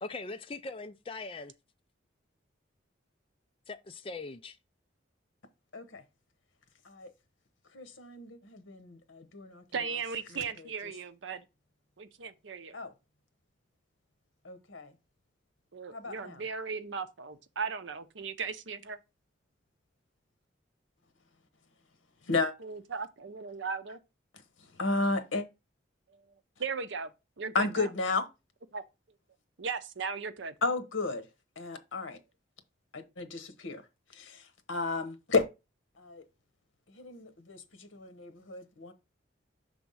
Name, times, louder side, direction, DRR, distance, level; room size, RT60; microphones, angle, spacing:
voice 1, 0.0-1.5 3.7-4.6, left 3 dB, 30° left, 0.4 m, -41 dB
voice 2, 5.7-6.0 6.8-7.1 7.7-9.9 10.3-10.9 12.7-12.9 14.4-15.0 15.9-16.4 22.2-22.5 24.3-25.5 27.5-28.3 30.6-32.2 32.9-35.5 35.9-36.2 36.9-38.9, left 3 dB, 85° left, 1.0 m, -34 dB
voice 3, 9.7-11.5 12.0-12.8 15.7-19.0 22.6-24.0 26.6-27.1 27.4-27.7 28.7-28.8 29.6-30.5, right 5 dB, 75° right, 0.6 m, -37 dB
6.0 x 3.5 x 5.4 m
head